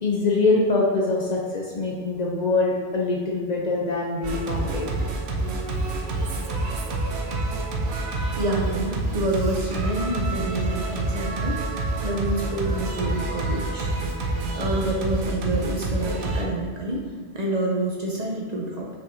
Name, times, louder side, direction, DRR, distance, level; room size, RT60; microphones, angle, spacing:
voice 1, 0.0-4.9, left 3 dB, 55° left, -2 dB, 0.5 m, -24 dB
Singing, 4.2-16.4, right 2 dB, 90° right, 0.9 m, -27 dB
voice 2, 8.3-11.6 12.0-13.9 14.5-17.1 17.3-18.9, right 1 dB, 50° right, -2 dB, 0.6 m, -27 dB
5.2 x 3.4 x 2.6 m, 1.5 s
omnidirectional pair, 1.1 m